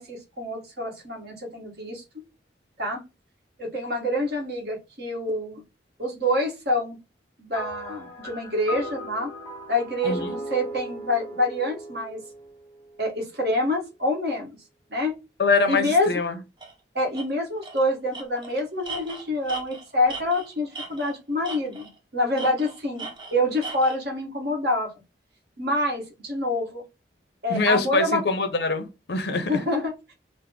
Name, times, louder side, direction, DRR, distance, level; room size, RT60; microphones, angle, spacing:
voice 1, 0.0-2.0 2.8-3.0 3.6-5.6 6.0-7.0 7.4-9.3 9.7-12.2 13.0-14.5 14.9-15.1 15.7-16.1 16.9-24.9 25.6-26.8 27.4-28.2 29.5-29.9, left 1 dB, 60° right, 1.3 m, -26 dB
sound 1, 7.5-13.0, equal, 15° left, 0.5 m, -37 dB
voice 2, 10.0-10.4 15.4-16.4 27.5-29.6, left 3 dB, 65° left, 0.6 m, -24 dB
Tools, 16.6-16.7 17.1-17.3 17.6-17.8 18.1-21.2 21.4-22.0 22.4-24.0, right 3 dB, 25° right, 0.7 m, -38 dB
3.4 x 2.0 x 3.6 m
head